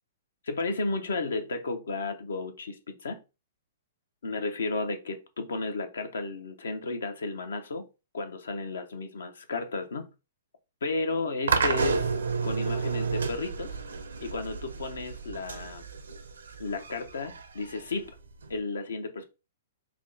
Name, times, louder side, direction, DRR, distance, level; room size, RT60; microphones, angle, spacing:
voice 1, 0.4-3.2 4.2-7.9 8.1-10.1 10.8-12.1 12.4-13.8 14.2-15.8 16.6-18.1 18.5-19.2, left 3 dB, 80° left, 0.7 m, -33 dB
sound 1, 11.5-18.5, right 5 dB, 85° right, 0.6 m, -31 dB
3.5 x 2.2 x 3.7 m
hypercardioid pair, 125°, 0 cm